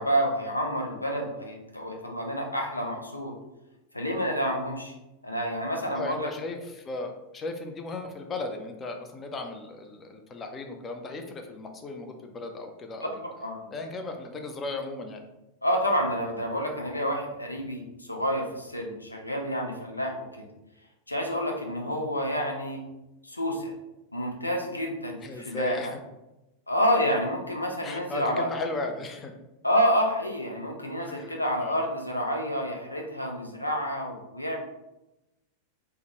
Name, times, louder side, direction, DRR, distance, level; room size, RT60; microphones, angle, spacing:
voice 1, 0.0-3.3 3.9-4.9 5.2-6.3 13.4-13.6 15.6-20.5 21.1-22.8 23.2-23.7 24.1-25.8 26.7-28.5 29.6-34.6, equal, 85° left, 1 dB, 0.5 m, -28 dB
voice 2, 5.9-13.2 13.7-15.2 21.9-22.0 25.2-26.0 27.8-29.3 31.0-31.8, left 2 dB, 20° left, 4 dB, 0.5 m, -36 dB
3.5 x 2.2 x 3.0 m, 0.96 s
figure-of-eight pair, 90°, 0 cm